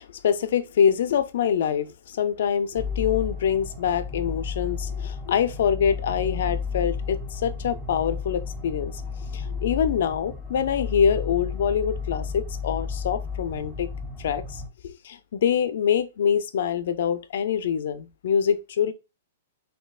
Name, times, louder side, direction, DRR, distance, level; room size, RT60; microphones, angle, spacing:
voice 1, 0.0-9.0 9.3-13.9 14.2-18.9, left 8 dB, 65° left, 0.5 m, -25 dB
sound 1, 2.8-14.7, left 5 dB, 5° left, 0.5 m, -33 dB
5.8 x 2.7 x 2.4 m
hypercardioid pair, 160°, 0 cm